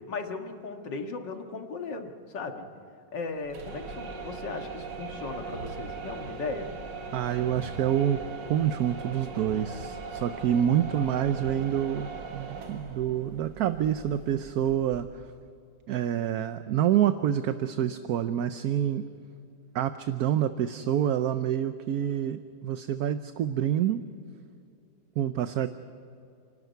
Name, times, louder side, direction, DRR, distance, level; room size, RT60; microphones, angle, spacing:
voice 1, 0.1-2.7 3.1-6.7, left 4 dB, 85° left, 4 dB, 2.4 m, -36 dB
sound 1, 3.4-15.3, right 4 dB, 85° right, 2.4 m, -40 dB
voice 2, 7.1-15.3 15.9-19.0 19.7-24.0 25.2-25.7, right 10 dB, 65° right, 10 dB, 1.1 m, -27 dB
29.5 x 12.5 x 9.3 m, 2.5 s
omnidirectional pair, 1.9 m